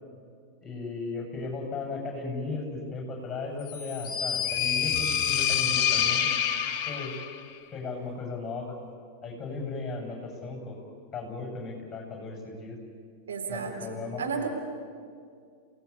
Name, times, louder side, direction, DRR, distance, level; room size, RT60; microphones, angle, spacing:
voice 1, 0.6-6.3 6.9-7.1 7.7-8.8 9.2-10.8 11.1-12.8 13.5-14.5, left 3 dB, 20° left, 1 dB, 7.5 m, -36 dB
sound 1, 3.7-7.4, left 8 dB, 40° left, 1.4 m, -27 dB
voice 2, 13.3-14.5, right 5 dB, 65° right, 1 dB, 3.9 m, -33 dB
30.0 x 18.0 x 8.6 m, 2.2 s
figure-of-eight pair, 90°, 0 cm